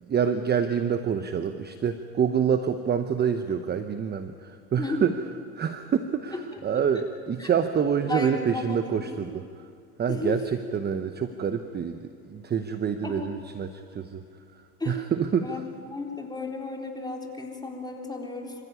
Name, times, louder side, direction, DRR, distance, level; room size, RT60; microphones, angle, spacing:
voice 1, 0.1-5.2 5.6-9.4 10.0-14.2 14.9-15.6, right 7 dB, 20° right, 9 dB, 1.0 m, -27 dB
voice 2, 4.8-5.1 7.4-7.5 8.1-9.2 10.1-10.4 13.0-13.3 14.8-15.0 15.4-15.6 15.9-18.5, left 2 dB, 10° left, 1 dB, 3.9 m, -33 dB
26.0 x 15.5 x 9.6 m, 2.3 s
supercardioid pair, 110°, 45 cm